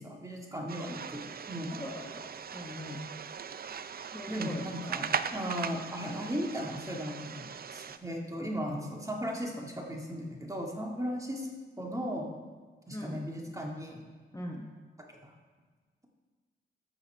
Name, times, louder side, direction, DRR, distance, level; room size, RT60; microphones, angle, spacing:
voice 1, 0.0-1.7 4.3-11.5 11.8-12.3 12.9-14.0 15.2-15.3, equal, 15° right, 0 dB, 2.1 m, -36 dB
sound 1, 0.7-8.0, right 7 dB, 45° right, 0.5 m, -39 dB
voice 2, 1.7-3.0 4.0-4.7 5.0-5.1 12.9-13.3 14.3-14.7, left 1 dB, 15° left, -1 dB, 1.1 m, -42 dB
13.5 x 6.0 x 4.5 m, 1.4 s
cardioid pair, 60°, 21 cm